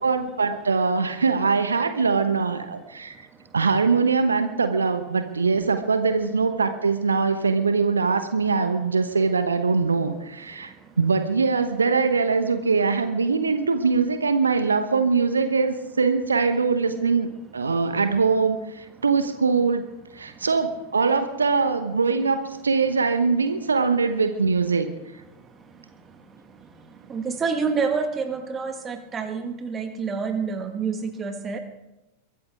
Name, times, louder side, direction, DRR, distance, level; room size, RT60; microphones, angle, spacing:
voice 1, 0.0-3.3 3.5-19.8 20.1-24.9, right 4 dB, 75° right, 9 dB, 1.0 m, -22 dB
voice 2, 27.1-31.6, right 5 dB, 20° right, 6 dB, 1.7 m, -27 dB
23.0 x 13.5 x 3.6 m, 0.97 s
figure-of-eight pair, 90°, 0 cm